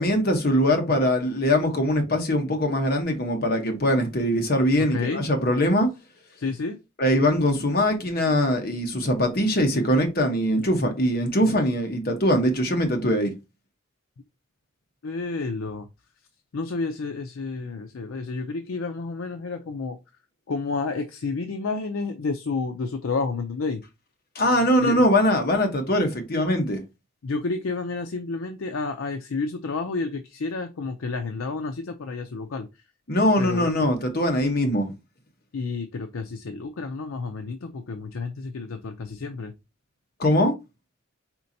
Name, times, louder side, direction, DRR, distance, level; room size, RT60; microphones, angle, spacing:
voice 1, 0.0-5.9 7.0-13.3 24.3-26.8 33.1-34.9 40.2-40.5, equal, 45° left, 1.0 m, -22 dB
voice 2, 4.9-5.2 6.4-6.8 15.0-15.9 16.5-20.0 20.5-23.8 24.8-25.0 27.2-32.7 33.4-33.7 35.5-39.5, left 4 dB, 85° left, 0.5 m, -30 dB
4.4 x 4.3 x 2.7 m
head